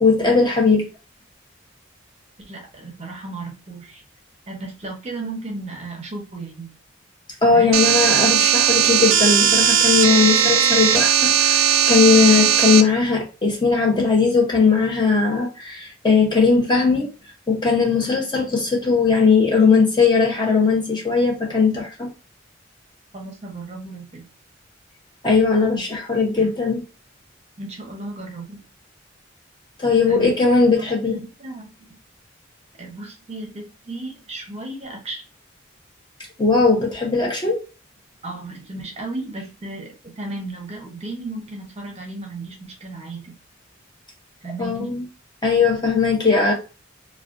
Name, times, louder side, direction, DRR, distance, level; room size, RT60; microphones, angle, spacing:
voice 1, 0.0-0.9 7.4-17.1 17.5-22.1 25.2-26.8 29.8-31.2 36.4-37.6 44.6-45.1 45.4-46.5, left 4 dB, 25° left, 0.6 m, -18 dB
voice 2, 2.5-4.0 4.5-6.7 7.5-7.7 23.1-24.3 25.8-25.9 26.4-26.5 27.6-28.6 30.1-30.3 30.7-31.7 32.8-35.2 38.2-43.3 44.4-45.0, right 2 dB, 35° right, 0.6 m, -34 dB
sound 1, 7.7-12.8, right 8 dB, 80° right, 0.3 m, -17 dB
2.4 x 2.2 x 2.4 m
head